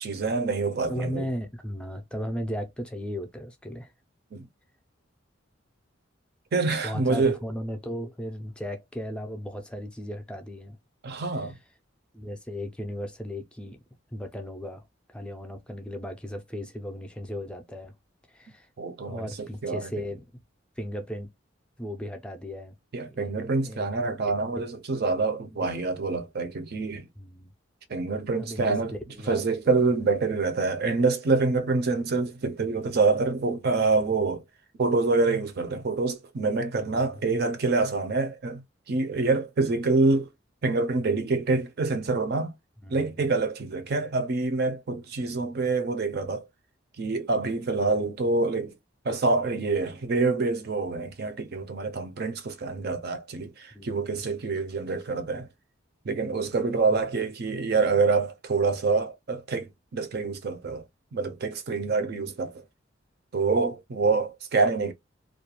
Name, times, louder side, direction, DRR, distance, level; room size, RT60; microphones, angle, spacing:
voice 1, 0.0-1.3 4.3-4.5 6.5-7.4 11.0-11.6 18.8-19.9 22.9-27.1 27.9-28.9 29.3-34.4 34.8-40.3 40.6-42.5 42.9-46.5 47.0-48.8 49.0-55.5 56.0-60.8 61.1-62.6 63.3-64.9, right 3 dB, 55° right, 0.5 m, -26 dB
voice 2, 0.9-3.9 6.8-10.8 12.1-13.8 14.1-17.9 18.3-18.7 19.1-20.4 20.8-21.3 21.8-22.8 23.1-24.0 24.5-24.7 25.4-25.7 27.2-27.5 28.4-28.8 29.1-29.6 36.7-37.2 42.8-43.2 53.7-54.2, equal, 5° left, 0.4 m, -36 dB
2.4 x 2.2 x 2.8 m
head